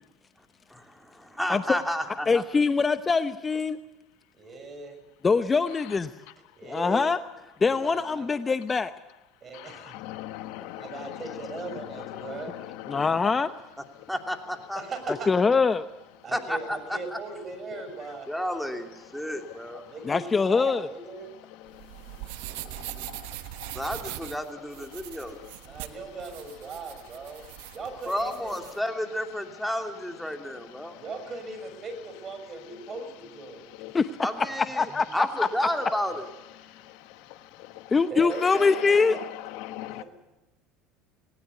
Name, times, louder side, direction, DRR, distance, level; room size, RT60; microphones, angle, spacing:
voice 1, 0.7-2.4 14.1-14.8 16.3-17.2 18.3-19.9 23.7-25.4 28.1-31.0 34.2-36.2, equal, ahead, 2.9 m, -31 dB
voice 2, 2.3-3.8 5.2-6.1 6.6-7.2 7.6-8.9 12.9-13.5 15.3-15.8 20.1-20.9 33.9-34.1 34.4-34.5 34.8-35.5 37.9-39.2, left 4 dB, 25° left, 0.8 m, -23 dB
voice 3, 4.3-5.0 6.5-7.1 7.6-8.3 9.4-10.0 10.8-12.5 14.7-15.3 16.2-18.3 19.9-21.3 25.6-28.5 31.0-33.6 38.1-39.2 39.9-40.0, right 3 dB, 35° right, 6.2 m, -39 dB
voice 4, 9.5-13.2 17.7-17.8 21.6-23.8 25.4-25.5 30.8-31.0 33.7-34.0 36.6-38.0 38.6-40.0, left 15 dB, 70° left, 1.1 m, -41 dB
sound 1, 21.7-28.8, right 17 dB, 75° right, 1.1 m, -41 dB
20.0 x 19.0 x 8.3 m
hypercardioid pair, 80°, 0 cm